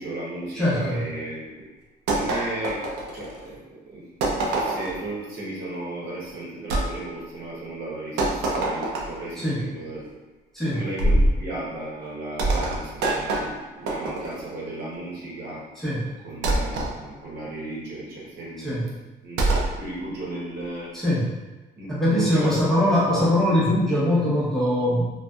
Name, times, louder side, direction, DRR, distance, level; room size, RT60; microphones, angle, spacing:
voice 1, 0.0-1.6 2.1-10.1 10.7-15.6 16.2-18.7 19.2-20.9 21.8-23.7, right 1 dB, 70° right, -6 dB, 0.9 m, -35 dB
voice 2, 0.5-1.0 9.4-9.7 10.5-10.8 15.8-16.2 18.6-18.8 20.9-21.3 21.9-25.1, left 1 dB, ahead, -10 dB, 1.0 m, -22 dB
sound 1, 2.1-3.5 4.2-5.0 6.7-6.9 8.2-9.3 11.0-11.4 12.4-14.5 16.4-16.9 19.4-19.8, right 2 dB, 90° right, 0.5 m, -24 dB
2.6 x 2.2 x 2.3 m, 1.2 s
cardioid pair, 110°, 17 cm